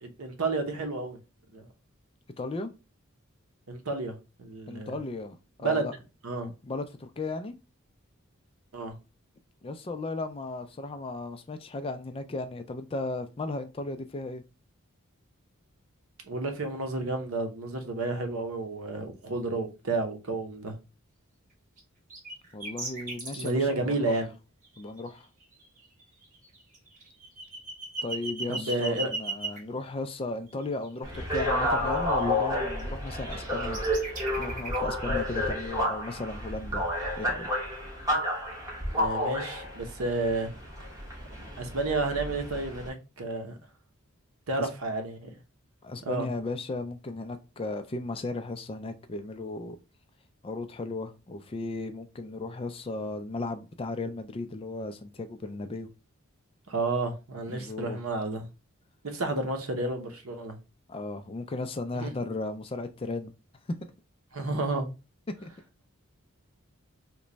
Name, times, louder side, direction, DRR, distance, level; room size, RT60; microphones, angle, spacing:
voice 1, 0.0-1.2 1.5-1.7 3.7-4.9 5.6-5.9 6.2-6.5 8.7-8.9 16.3-20.7 23.4-24.3 28.5-29.1 38.9-40.5 41.4-43.6 44.5-45.3 46.0-46.3 56.7-58.5 59.0-60.6 61.9-62.1 64.3-64.9, right 2 dB, 85° right, 0.8 m, -31 dB
voice 2, 2.4-2.7 4.7-5.9 6.4-7.5 9.6-14.4 22.5-24.1 24.8-25.3 28.0-34.1 34.4-36.8 37.2-37.5 44.6-44.7 45.8-49.8 50.4-55.9 57.5-58.0 60.9-63.3 63.8-63.9 65.3-65.5, left 2 dB, 25° left, 0.3 m, -35 dB
sound 1, 21.8-21.9 22.1-23.5 24.6-25.1 25.4-29.6 30.5-31.8 32.2-32.8 33.1-34.8, right 2 dB, 40° right, 1.1 m, -37 dB
sound 2, 31.0-42.9, left 1 dB, 15° right, 1.0 m, -30 dB
3.0 x 2.2 x 3.8 m
head